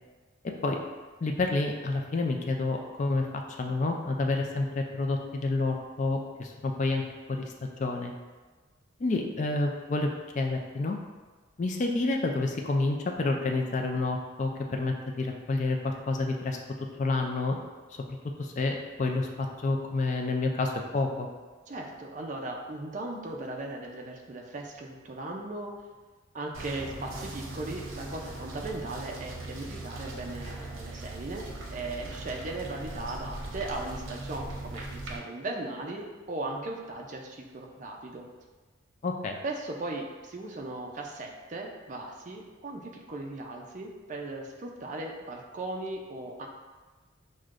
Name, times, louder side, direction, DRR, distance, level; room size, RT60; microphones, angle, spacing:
voice 1, 1.2-3.3 3.6-7.0 7.3-8.1 9.0-10.1 10.4-11.0 11.6-16.6 17.0-17.6 18.4-21.3 39.0-39.4, left 3 dB, 40° left, 3 dB, 0.3 m, -29 dB
voice 2, 21.7-25.7 26.3-38.3 39.4-46.5, right 2 dB, 40° right, 0 dB, 0.4 m, -38 dB
sound 1, 26.5-35.2, right 2 dB, 90° right, 0.7 m, -40 dB
6.2 x 2.2 x 2.5 m, 1.3 s
head